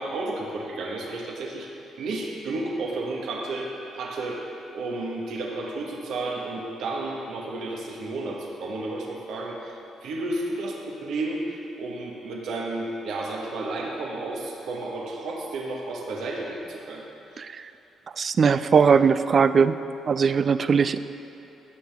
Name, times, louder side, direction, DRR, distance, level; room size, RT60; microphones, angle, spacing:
voice 1, 0.0-1.7 2.0-4.5 4.7-9.7 10.0-17.0 17.3-17.5, right 2 dB, 75° right, -1 dB, 1.3 m, -32 dB
voice 2, 18.2-19.8 20.1-21.0, right 6 dB, 45° right, 13 dB, 0.3 m, -20 dB
15.5 x 6.7 x 3.5 m, 3.0 s
cardioid pair, 90°, 0 cm